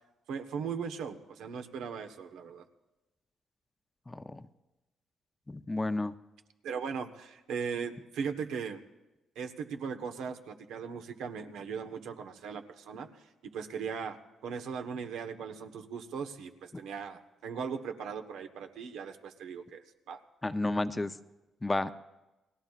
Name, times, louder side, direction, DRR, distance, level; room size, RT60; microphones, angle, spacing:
voice 1, 0.3-2.6 6.6-8.8 9.3-13.3 13.5-20.2, right 6 dB, 85° right, 5 dB, 1.2 m, -38 dB
voice 2, 4.1-4.4 5.5-6.1 20.4-21.1 21.6-21.9, left 2 dB, 15° left, 11 dB, 0.6 m, -31 dB
30.0 x 19.5 x 2.5 m, 1.0 s
cardioid pair, 90°, 0 cm